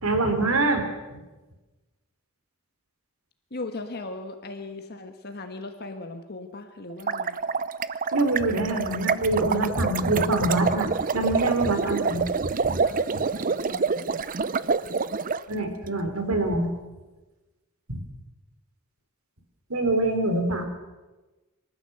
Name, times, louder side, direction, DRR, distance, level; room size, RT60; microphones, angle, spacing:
voice 1, 0.0-0.8 1.1-1.2 8.1-12.2 12.6-12.7 15.5-16.7 17.9-18.0 19.7-20.7, right 2 dB, 80° right, 6 dB, 3.5 m, -25 dB
voice 2, 3.5-7.4 11.8-12.2 12.8-13.0 13.3-14.1, left 2 dB, 50° left, 6 dB, 1.4 m, -38 dB
sound 1, 6.9-15.4, right 5 dB, 40° right, 0.6 m, -27 dB
25.5 x 13.5 x 8.0 m, 1.2 s
head